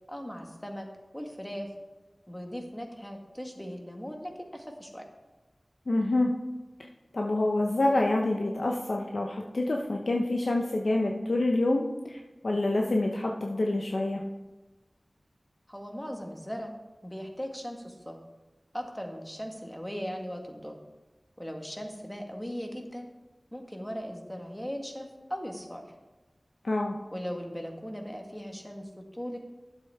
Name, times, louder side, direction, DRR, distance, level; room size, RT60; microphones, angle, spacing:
voice 1, 0.1-0.9 1.1-1.7 2.3-5.0 15.7-16.7 17.0-18.2 18.7-20.8 21.4-23.1 23.5-25.8 27.1-29.4, equal, 10° left, 2 dB, 1.7 m, -38 dB
voice 2, 5.9-6.3 7.1-14.2 26.6-27.0, left 2 dB, 75° left, 1 dB, 0.8 m, -27 dB
11.5 x 7.6 x 3.6 m, 1.1 s
wide cardioid pair, 50°, 0 cm